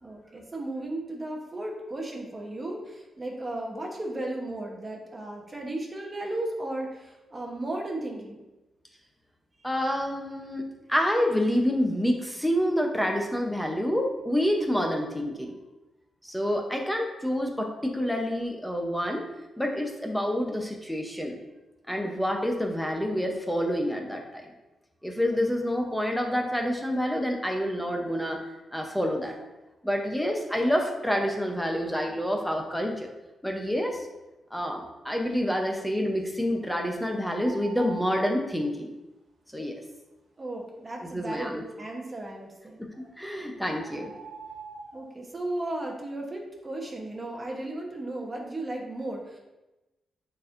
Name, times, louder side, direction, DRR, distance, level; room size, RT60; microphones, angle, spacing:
voice 1, 0.0-8.4 40.4-42.8 44.9-49.4, right 1 dB, 25° right, 0 dB, 1.0 m, -35 dB
voice 2, 9.6-15.6 16.2-19.3 19.6-21.4 21.9-24.5 25.0-28.4 28.7-29.4 29.8-33.1 33.4-34.1 34.5-38.9 39.5-39.8 41.0-41.6 42.8-44.1, equal, 5° left, 2 dB, 0.7 m, -28 dB
sound 1, 37.4-38.3 42.9-43.1 43.8-45.0, right 4 dB, 90° right, 1.4 m, -43 dB
8.9 x 4.3 x 2.6 m, 1.0 s
wide cardioid pair, 140°, 0 cm